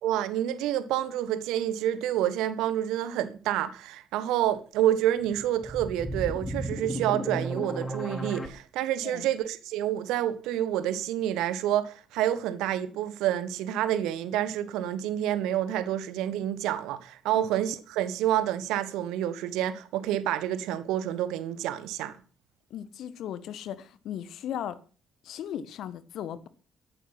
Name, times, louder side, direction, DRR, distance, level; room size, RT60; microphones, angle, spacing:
voice 1, 0.0-22.2, right 11 dB, 65° right, 1.4 m, -28 dB
sound 1, 5.2-8.5, right 1 dB, 25° left, 2.9 m, -34 dB
voice 2, 22.7-24.8 25.2-26.5, left 10 dB, 60° left, 1.3 m, -37 dB
13.5 x 11.0 x 5.9 m
figure-of-eight pair, 40°, 0 cm